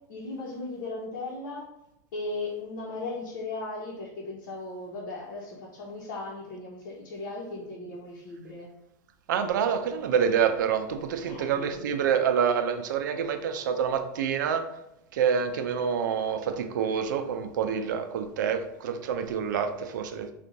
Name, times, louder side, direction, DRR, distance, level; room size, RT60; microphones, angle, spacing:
voice 1, 0.1-1.7 2.1-8.7 11.2-11.8, left 2 dB, 60° left, 1.1 m, -37 dB
voice 2, 9.3-14.7 15.1-20.3, right 7 dB, 75° right, 0.5 m, -27 dB
4.4 x 2.5 x 4.0 m
supercardioid pair, 130°, 10 cm